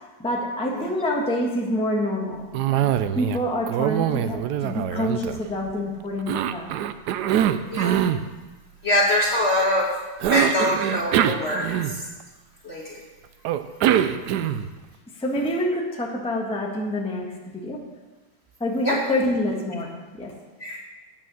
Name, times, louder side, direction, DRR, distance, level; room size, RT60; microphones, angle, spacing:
voice 1, 0.2-6.7 13.9-14.4 15.2-17.8 18.6-20.3, left 1 dB, 5° left, -1 dB, 1.1 m, -27 dB
Cough, 2.5-3.4 3.7-5.7 6.3-8.2 10.2-12.2 13.4-14.8, right 10 dB, 75° right, 0.9 m, -23 dB
voice 2, 8.8-9.9 10.2-12.0 12.6-13.0 18.8-19.0 20.6-20.8, left 1 dB, 40° left, -2 dB, 1.2 m, -23 dB
9.2 x 8.9 x 6.2 m, 1.2 s
omnidirectional pair, 2.2 m